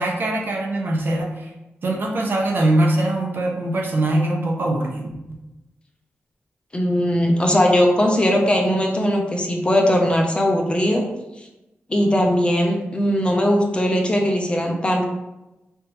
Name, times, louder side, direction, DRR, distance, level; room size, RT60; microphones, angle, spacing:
voice 1, 0.0-1.5 1.8-5.4, right 1 dB, 55° right, 0 dB, 0.9 m, -22 dB
voice 2, 6.7-11.0 11.4-11.5 11.9-15.0, equal, 25° left, 1 dB, 0.7 m, -19 dB
5.0 x 3.5 x 3.0 m, 0.98 s
wide cardioid pair, 120°, 4 cm